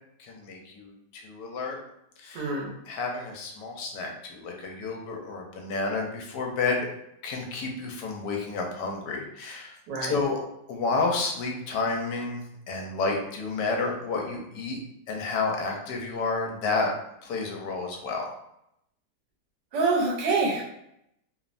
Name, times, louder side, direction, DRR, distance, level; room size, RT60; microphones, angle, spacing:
voice 1, 0.2-1.8 2.2-2.5 2.9-6.9 7.2-9.8 10.1-10.4 10.7-14.8 15.1-16.9 17.2-18.3, left 3 dB, 85° left, 1 dB, 1.2 m, -30 dB
voice 2, 2.3-2.7 9.9-10.1 19.7-20.6, right 3 dB, 80° right, -2 dB, 1.3 m, -26 dB
3.1 x 2.0 x 2.4 m, 0.79 s
omnidirectional pair, 1.8 m